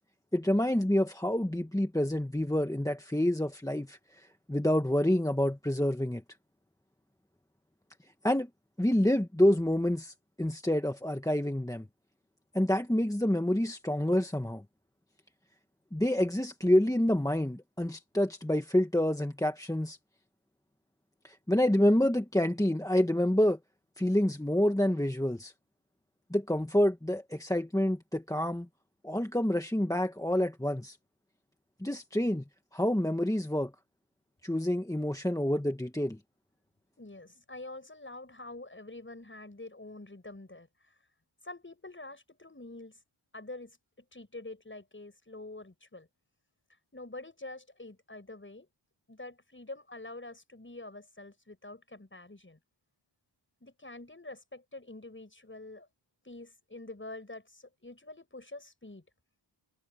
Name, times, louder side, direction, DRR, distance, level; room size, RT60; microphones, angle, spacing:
voice 1, 0.3-6.2 8.2-8.5 8.8-11.9 12.5-14.6 15.9-20.0 21.2-23.6 24.0-25.5 26.3-28.7 29.0-31.0 31.8-32.4 32.7-33.7 34.4-36.2, left 1 dB, 5° left, 1.6 m, -28 dB
voice 2, 37.0-41.0 41.4-43.0 43.3-46.1 46.9-48.7 49.1-52.6 53.6-55.9 56.2-59.1, left 2 dB, 25° left, 6.9 m, -46 dB
wide cardioid pair, 80°, 49 cm